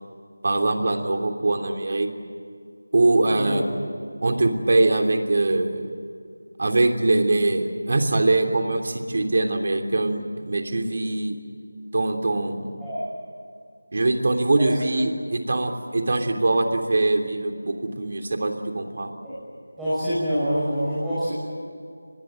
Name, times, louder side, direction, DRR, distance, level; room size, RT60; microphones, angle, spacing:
voice 1, 0.4-2.1 2.9-3.6 4.2-5.9 6.6-11.4 11.9-12.7 13.9-19.1, right 2 dB, 45° right, 4 dB, 3.0 m, -22 dB
voice 2, 3.2-3.6 12.8-13.0 19.2-19.3 19.8-21.3, equal, 5° right, -16 dB, 6.8 m, -25 dB
25.5 x 21.0 x 9.2 m, 2.2 s
figure-of-eight pair, 170°, 0 cm